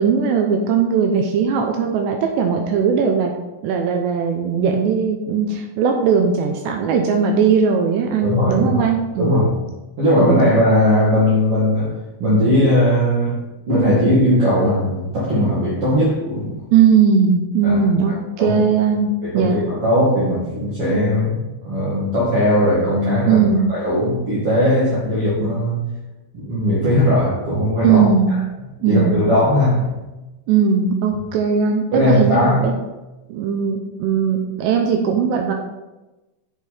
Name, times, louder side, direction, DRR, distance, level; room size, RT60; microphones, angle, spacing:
voice 1, 0.0-3.3 3.6-9.3 10.1-10.4 16.7-19.6 23.3-23.7 27.8-28.3 28.8-29.3 30.5-32.7 33.3-35.5, right 6 dB, 80° right, 3 dB, 2.6 m, -18 dB
voice 2, 8.2-8.8 9.2-9.7 10.0-11.9 12.2-13.4 13.7-16.5 17.6-17.8 18.1-18.6 19.2-23.4 23.7-25.9 26.3-28.1 28.8-29.9 31.9-32.7, left 1 dB, 45° right, -9 dB, 2.1 m, -18 dB
8.1 x 6.7 x 4.3 m, 1.1 s
omnidirectional pair, 5.6 m